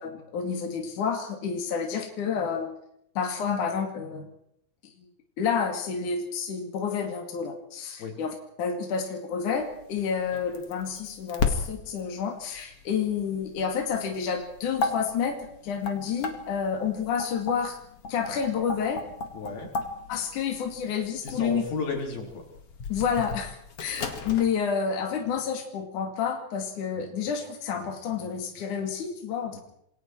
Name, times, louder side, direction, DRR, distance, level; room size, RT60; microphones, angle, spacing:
voice 1, 0.0-2.8 3.2-4.3 5.0-5.1 5.4-17.8 18.1-19.0 20.1-21.6 22.9-29.6, left 6 dB, 60° left, 2 dB, 3.8 m, -29 dB
sound 1, 9.5-24.5, left 4 dB, 45° left, 2.8 m, -35 dB
voice 2, 19.3-19.7 21.2-22.4 29.5-29.6, left 4 dB, 85° left, 1 dB, 6.1 m, -33 dB
27.5 x 22.0 x 4.6 m, 0.71 s
omnidirectional pair, 4.1 m